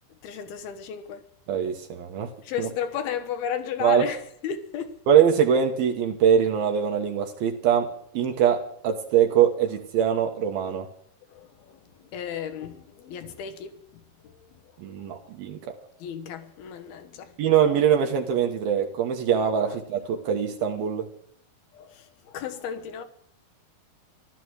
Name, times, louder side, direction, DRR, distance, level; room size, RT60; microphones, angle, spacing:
voice 1, 0.2-1.2 2.4-5.0 11.3-11.8 12.1-13.7 16.0-17.3 20.1-20.2 21.7-23.0, left 8 dB, 80° left, 3.2 m, -33 dB
voice 2, 1.5-2.3 2.6-2.7 3.8-4.1 5.1-10.9 14.8-15.8 17.4-21.1, right 8 dB, 75° right, 3.0 m, -23 dB
15.0 x 12.5 x 6.4 m
omnidirectional pair, 4.5 m